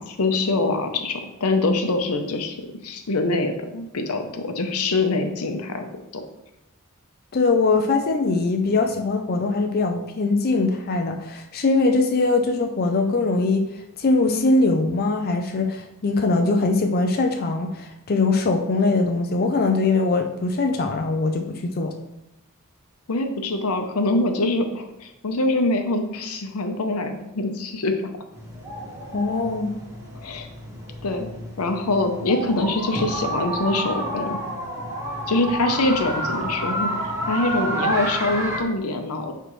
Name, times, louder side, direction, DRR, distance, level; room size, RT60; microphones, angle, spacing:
voice 1, 0.0-2.5 2.8-5.9 23.1-28.0 30.2-30.5 31.0-31.3 31.6-34.4 35.3-39.3, left 2 dB, 85° left, 6 dB, 0.8 m, -24 dB
voice 2, 7.3-13.7 14.0-21.9 29.1-29.7, left 3 dB, 45° left, 4 dB, 0.5 m, -21 dB
sound 1, 28.3-38.6, right 1 dB, 15° right, 1.4 m, -29 dB
9.8 x 3.4 x 3.1 m, 0.89 s
head